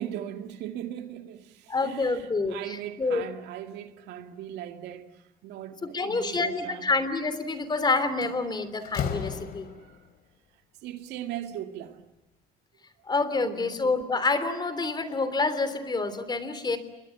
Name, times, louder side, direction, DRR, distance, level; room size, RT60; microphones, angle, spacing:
voice 1, 0.0-6.9 9.8-10.0 10.8-12.0 13.4-13.8, right 11 dB, 85° right, 2.3 m, -39 dB
voice 2, 1.7-3.2 5.8-9.7 13.1-16.8, left 3 dB, 25° left, 3.3 m, -28 dB
Slam, 7.5-7.8 8.2-10.1, left 8 dB, 65° left, 3.4 m, -34 dB
29.0 x 21.5 x 8.6 m
cardioid pair, 110°, 17 cm